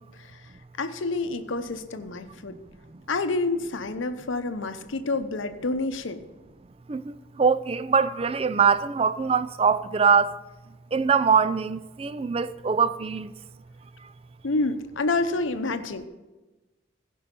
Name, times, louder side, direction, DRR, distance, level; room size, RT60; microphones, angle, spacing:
voice 1, 0.8-2.5 3.1-6.2 14.4-16.1, left 3 dB, 75° left, 0.7 m, -28 dB
voice 2, 7.4-10.3 10.9-13.3, right 6 dB, 30° right, 0.3 m, -22 dB
16.0 x 5.5 x 5.2 m
head